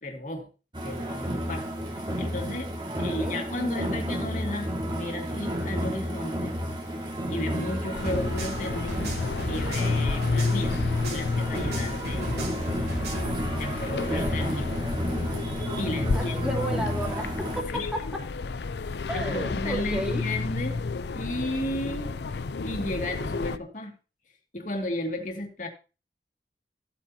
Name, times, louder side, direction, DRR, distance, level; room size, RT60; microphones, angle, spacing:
voice 1, 0.0-0.5 0.8-2.7 3.0-7.0 7.3-9.2 9.5-12.3 12.7-13.0 13.6-14.8 15.8-16.6 17.7-17.9 19.1-20.8 21.1-22.1 22.6-23.9 24.5-25.7, left 1 dB, 45° left, 2.3 m, -34 dB
sound 1, 0.7-17.6, equal, 25° right, 2.0 m, -32 dB
voice 2, 2.9-3.4 16.0-17.6 17.9-18.0 19.1-20.2, right 1 dB, 5° right, 2.9 m, -33 dB
sound 2, 7.9-23.6, left 4 dB, 75° left, 0.5 m, -31 dB
sound 3, 8.0-11.3 11.5-13.4, right 2 dB, 70° right, 3.1 m, -36 dB
14.5 x 8.4 x 2.8 m
head